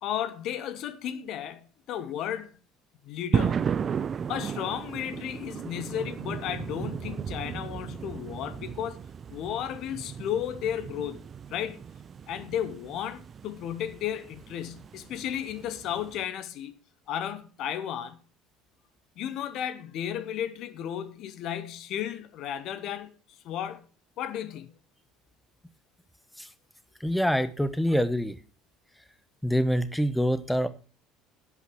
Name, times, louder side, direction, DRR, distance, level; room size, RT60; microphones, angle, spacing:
voice 1, 0.0-2.5 3.0-3.6 4.3-9.0 9.3-11.2 11.5-11.8 12.3-16.7 17.1-18.2 19.2-23.1 23.4-23.9 24.2-24.7, left 10 dB, 60° left, 1.1 m, -34 dB
sound 1, 3.3-16.2, right 7 dB, 40° right, 0.5 m, -35 dB
voice 2, 27.0-28.4 29.4-30.7, equal, 5° left, 1.0 m, -25 dB
11.0 x 6.0 x 6.2 m
hypercardioid pair, 65°, 0 cm